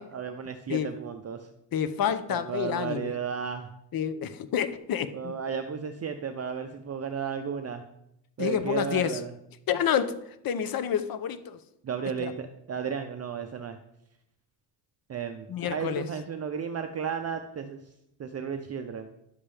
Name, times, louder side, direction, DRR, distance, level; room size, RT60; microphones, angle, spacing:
voice 1, 0.0-1.5 2.3-3.7 5.1-7.8 8.4-9.3 11.8-13.8 15.1-17.8 18.2-19.1, right 7 dB, 35° right, 7 dB, 0.6 m, -34 dB
voice 2, 1.7-3.1 3.9-5.4 8.4-9.2 9.7-10.1 10.4-11.6 12.2-12.3 15.5-16.1, left 8 dB, 55° left, 10 dB, 0.8 m, -28 dB
10.5 x 7.2 x 3.4 m, 0.79 s
cardioid pair, 135°, 43 cm